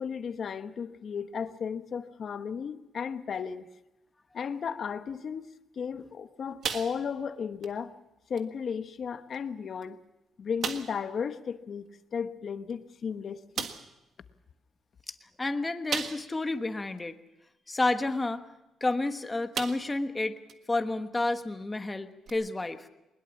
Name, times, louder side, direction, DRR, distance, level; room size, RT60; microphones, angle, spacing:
voice 1, 0.0-3.7 4.3-5.5 5.8-7.9 8.3-10.0 10.4-13.7, left 6 dB, 50° left, 10 dB, 1.1 m, -35 dB
sound 1, 6.6-7.3 7.6-7.8 8.4-8.5 9.3-9.4 9.8-9.9 10.6-11.0 12.7-12.8 13.6-14.0 15.9-16.5 17.0-17.1 18.9-19.1 19.5-20.0 20.5-20.6 22.3-22.4, right 6 dB, 60° right, 1.5 m, -35 dB
voice 2, 15.1-17.2 17.7-18.4 18.8-20.4 20.7-22.9, left 2 dB, 15° left, 8 dB, 1.2 m, -30 dB
21.0 x 20.5 x 7.1 m, 0.96 s
cardioid pair, 125°, 0 cm